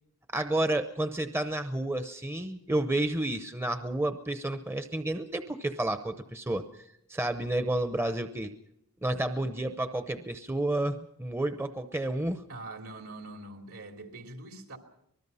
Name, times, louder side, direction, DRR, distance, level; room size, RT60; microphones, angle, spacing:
voice 1, 0.3-6.7 7.1-8.5 9.0-12.4, right 1 dB, 10° right, 0.7 m, -30 dB
voice 2, 12.5-14.8, right 2 dB, 75° right, 3.1 m, -43 dB
24.5 x 20.0 x 5.6 m
head